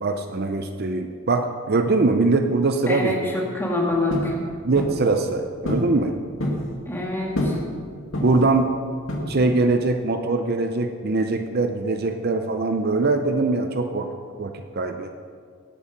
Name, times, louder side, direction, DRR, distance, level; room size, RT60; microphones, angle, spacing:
voice 1, 0.0-3.2 4.6-6.1 8.2-8.8 9.3-14.1 14.4-15.1, right 3 dB, 45° right, 7 dB, 0.6 m, -22 dB
voice 2, 2.9-4.4 6.9-7.6, left 2 dB, 10° left, -2 dB, 2.1 m, -25 dB
sound 1, 4.1-4.4 4.8-5.0 5.7-5.9 6.2-6.7 7.4-7.7 8.1-8.5 9.1-9.6, left 1 dB, 75° left, 2.2 m, -26 dB
18.0 x 8.5 x 5.1 m, 2.1 s
head